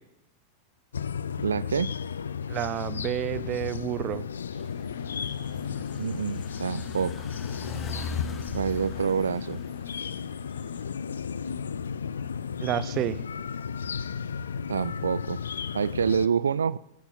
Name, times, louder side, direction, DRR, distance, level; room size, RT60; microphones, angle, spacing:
sound 1, 0.9-16.3, left 6 dB, 70° left, 0.4 m, -34 dB
voice 1, 1.4-1.9 6.0-7.3 8.5-9.6 14.7-15.4 15.7-16.8, right 7 dB, 70° right, 19 dB, 0.3 m, -27 dB
voice 2, 2.5-4.3 12.6-13.2, right 12 dB, 35° right, 15 dB, 0.7 m, -30 dB
sound 2, 4.6-10.8, left 5 dB, 25° left, 0.9 m, -40 dB
20.0 x 9.8 x 3.9 m, 0.86 s
figure-of-eight pair, 90°, 0 cm